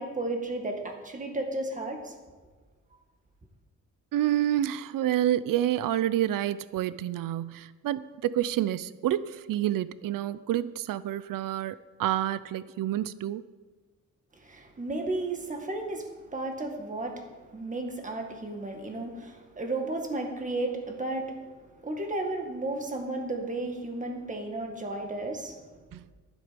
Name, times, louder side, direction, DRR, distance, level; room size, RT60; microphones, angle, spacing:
voice 1, 0.0-2.1 14.4-17.3 17.5-21.4 21.8-25.6, right 2 dB, 25° right, 1.8 m, -33 dB
voice 2, 4.1-13.4 25.9-26.0, right 12 dB, 80° right, 0.5 m, -28 dB
12.0 x 11.5 x 5.2 m
wide cardioid pair, 150°, 33 cm